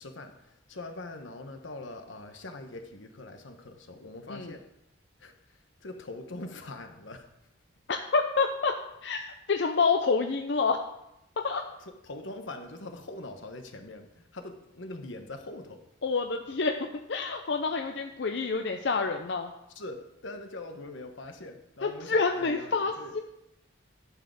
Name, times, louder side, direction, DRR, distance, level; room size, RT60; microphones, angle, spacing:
voice 1, 0.0-4.6 5.2-7.3 12.0-15.8 19.8-23.1, left 2 dB, 90° left, 6 dB, 1.2 m, -42 dB
voice 2, 7.9-8.7 9.0-10.8 11.4-11.6 16.0-19.5 21.8-23.2, left 4 dB, 65° left, 5 dB, 0.6 m, -28 dB
11.0 x 4.9 x 6.4 m, 0.86 s
head